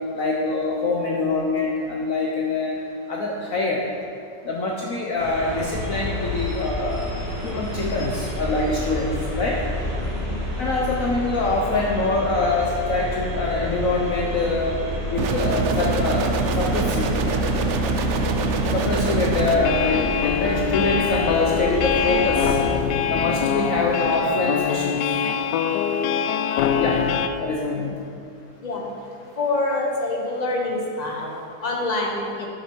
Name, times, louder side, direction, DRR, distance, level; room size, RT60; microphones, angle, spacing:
voice 1, 0.1-2.8 3.1-3.8 4.4-7.1 7.4-9.6 10.6-14.8 15.1-17.1 18.7-22.6 23.1-25.0 26.8-27.0 27.4-28.1, left 3 dB, 55° left, -2 dB, 1.2 m, -24 dB
sound 1, 5.2-22.7, left 1 dB, 90° right, 3.5 m, -30 dB
voice 2, 10.1-10.4 27.7-27.9 28.6-28.9 29.3-32.5, left 2 dB, 25° left, -1 dB, 1.3 m, -26 dB
sound 2, 15.2-19.6, right 3 dB, 60° right, 0.7 m, -24 dB
sound 3, 19.5-27.3, left 8 dB, 80° left, 1.2 m, -23 dB
12.0 x 6.3 x 5.2 m, 2.5 s
omnidirectional pair, 1.8 m